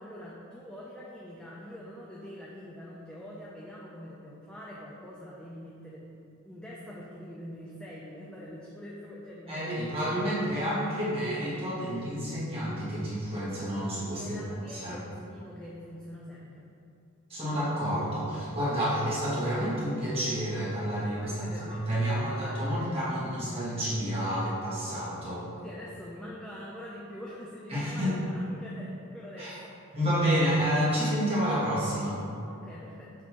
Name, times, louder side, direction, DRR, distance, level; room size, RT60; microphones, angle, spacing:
voice 1, 0.0-10.9 14.2-16.7 21.2-21.9 22.2-22.7 25.6-30.0 32.4-33.1, equal, 5° left, -6 dB, 0.3 m, -44 dB
voice 2, 9.5-14.4 14.7-15.0 17.3-25.5 27.7-28.1 29.4-29.5 29.9-32.2, equal, 30° right, -9 dB, 1.2 m, -29 dB
6.2 x 2.6 x 2.8 m, 2.6 s
head